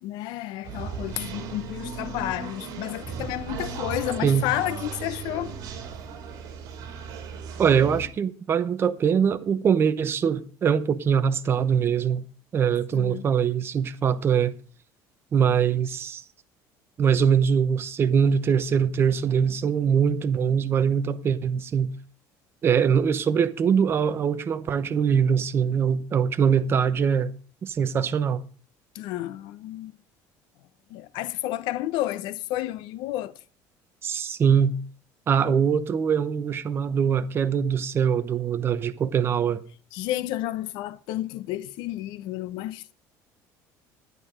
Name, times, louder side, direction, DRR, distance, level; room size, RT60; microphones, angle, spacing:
voice 1, 0.0-5.6 12.9-13.3 28.9-29.9 30.9-33.3 39.9-42.9, left 14 dB, 75° left, 0.8 m, -31 dB
sound 1, 0.6-8.1, right 6 dB, 50° right, 4.1 m, -36 dB
voice 2, 7.6-12.2 12.5-14.5 15.3-16.2 17.0-21.9 22.6-27.3 27.6-28.4 34.0-34.8 35.3-39.6, right 7 dB, 30° right, 0.9 m, -23 dB
11.0 x 11.0 x 5.0 m
cardioid pair, 155°, 8 cm